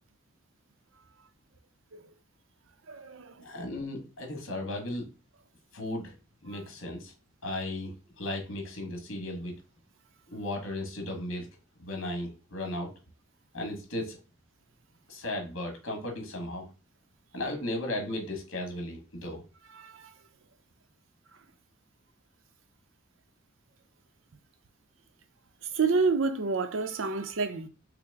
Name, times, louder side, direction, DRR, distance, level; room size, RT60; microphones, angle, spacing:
voice 1, 2.9-3.4 19.7-20.1 25.7-27.7, right 4 dB, 80° right, 0.6 m, -28 dB
voice 2, 3.4-5.0 5.7-6.1 6.4-7.1 7.4-9.6 10.3-11.5 11.8-12.9 13.5-14.2 15.1-16.7 17.3-19.4, left 1 dB, 80° left, 1.4 m, -35 dB
5.8 x 2.1 x 3.4 m
head